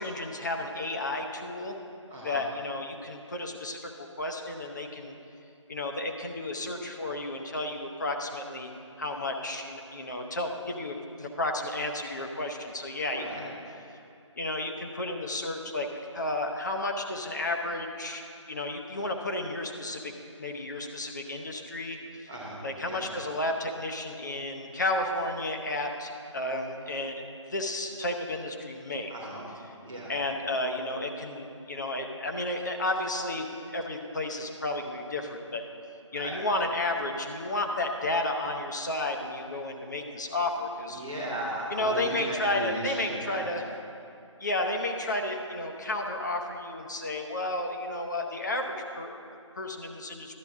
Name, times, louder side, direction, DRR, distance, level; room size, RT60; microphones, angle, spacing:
voice 1, 0.0-1.8 2.2-5.1 5.7-8.7 9.0-13.5 14.4-15.9 16.1-18.2 18.5-20.1 20.4-22.3 22.6-27.2 27.5-29.1 30.1-35.6 36.1-41.0 41.7-43.6 44.4-50.4, left 2 dB, 35° left, 2 dB, 0.8 m, -32 dB
voice 2, 2.1-2.4 13.1-13.4 22.3-23.1 29.1-29.4 29.8-30.2 36.1-36.4 40.9-43.5, right 1 dB, 5° left, -11 dB, 0.4 m, -36 dB
11.5 x 9.0 x 3.6 m, 2.6 s
figure-of-eight pair, 160°, 16 cm